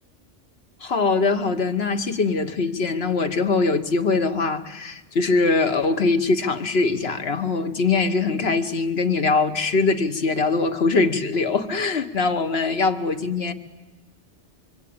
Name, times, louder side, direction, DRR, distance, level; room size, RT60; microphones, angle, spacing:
voice 1, 0.8-13.5, left 4 dB, 60° left, 1.5 m, -22 dB
25.0 x 24.5 x 8.7 m
omnidirectional pair, 1.2 m